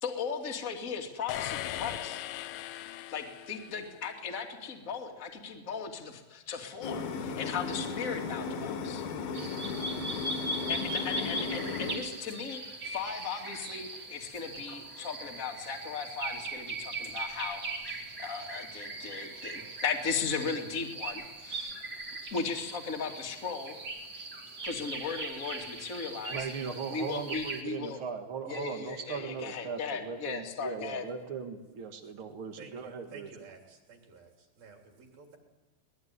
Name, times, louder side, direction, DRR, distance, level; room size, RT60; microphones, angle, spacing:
voice 1, 0.0-2.3 3.1-9.1 10.7-21.7 22.3-23.7 24.6-26.5 26.9-28.0 28.5-31.1, left 5 dB, 25° left, 1 dB, 1.8 m, -37 dB
sound 1, 1.3-4.1, left 13 dB, 80° left, 3.1 m, -39 dB
sound 2, 6.8-12.0, left 5 dB, 60° left, 3.3 m, -35 dB
sound 3, 9.3-27.6, right 2 dB, 35° right, 1.8 m, -40 dB
voice 2, 26.3-33.3, right 5 dB, 80° right, 5 dB, 1.1 m, -38 dB
voice 3, 32.6-35.4, right 5 dB, 50° right, 2 dB, 5.1 m, -52 dB
23.0 x 20.0 x 9.7 m, 1.2 s
omnidirectional pair, 5.4 m